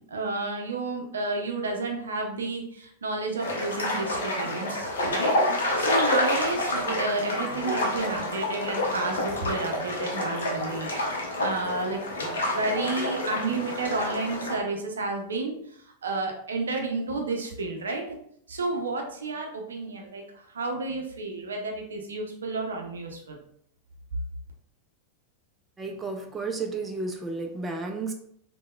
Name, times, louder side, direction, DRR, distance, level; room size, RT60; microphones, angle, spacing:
voice 1, 0.1-10.9 11.2-15.6 16.0-18.0 18.5-23.4, right 3 dB, 70° right, 2 dB, 0.5 m, -31 dB
sound 1, 3.4-14.6, left 1 dB, 65° left, 0.6 m, -28 dB
voice 2, 25.8-28.1, right 3 dB, 15° right, 3 dB, 0.3 m, -32 dB
3.4 x 2.1 x 2.3 m, 0.67 s
figure-of-eight pair, 90°, 0 cm